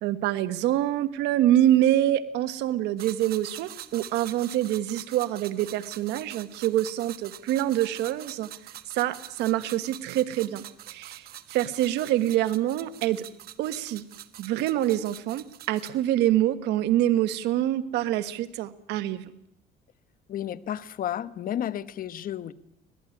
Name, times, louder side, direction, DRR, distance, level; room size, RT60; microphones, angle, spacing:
voice 1, 0.0-8.5 8.9-13.2 13.6-14.0 14.4-19.3, right 13 dB, 85° right, 1.4 m, -26 dB
sound 1, 3.0-16.0, right 12 dB, 65° right, 1.3 m, -45 dB
voice 2, 20.3-22.5, left 11 dB, 55° left, 1.2 m, -32 dB
24.5 x 19.5 x 9.8 m
cardioid pair, 110°, 17 cm